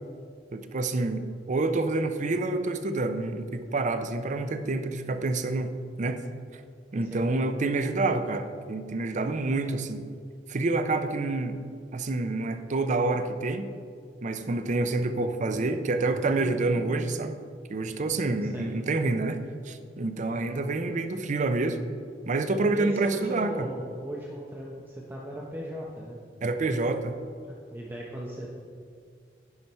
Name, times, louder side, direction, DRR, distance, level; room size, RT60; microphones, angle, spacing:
voice 1, 0.5-6.2 6.9-10.0 10.5-11.6 11.9-13.7 14.2-17.4 17.7-21.8 22.3-23.7 26.4-27.2, right 2 dB, 45° right, 9 dB, 0.5 m, -28 dB
voice 2, 22.7-26.2 27.4-28.5, equal, 10° right, -3 dB, 0.7 m, -37 dB
9.6 x 4.5 x 5.5 m, 2.2 s
head